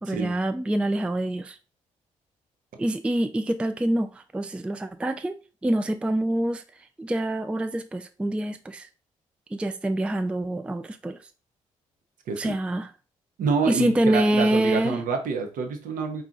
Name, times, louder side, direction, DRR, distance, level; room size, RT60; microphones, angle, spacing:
voice 1, 0.0-1.6 2.8-5.3 5.6-6.6 7.0-8.9 9.5-11.2 12.4-12.9 13.7-15.0, right 1 dB, 5° right, 0.3 m, -25 dB
voice 2, 13.4-16.2, right 5 dB, 55° right, 0.9 m, -27 dB
4.5 x 2.4 x 3.7 m
figure-of-eight pair, 40°, 17 cm